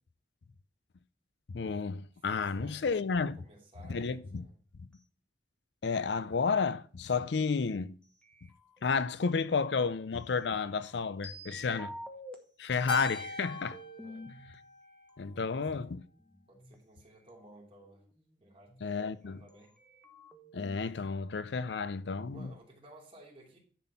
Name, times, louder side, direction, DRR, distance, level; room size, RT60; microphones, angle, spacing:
voice 1, 1.5-3.4 3.9-4.4 5.8-8.0 8.8-11.9 12.6-13.8 15.2-16.0 18.8-19.4 20.5-22.5, left 5 dB, 75° left, 0.5 m, -31 dB
voice 2, 2.1-2.8 3.3-4.6 11.6-11.9 14.0-14.3 15.5-15.9 16.5-18.0 18.4-19.7 22.3-23.6, right 1 dB, 35° right, 2.9 m, -57 dB
sound 1, 3.8-4.5 8.2-9.6 10.4-12.3 12.9-14.5 15.4-16.7 17.3-17.4 17.6-18.9 19.5-19.6 19.8-20.8, left 1 dB, 5° left, 1.2 m, -49 dB
Keyboard (musical), 12.9-15.4, left 2 dB, 30° left, 1.3 m, -40 dB
10.5 x 4.3 x 5.4 m
head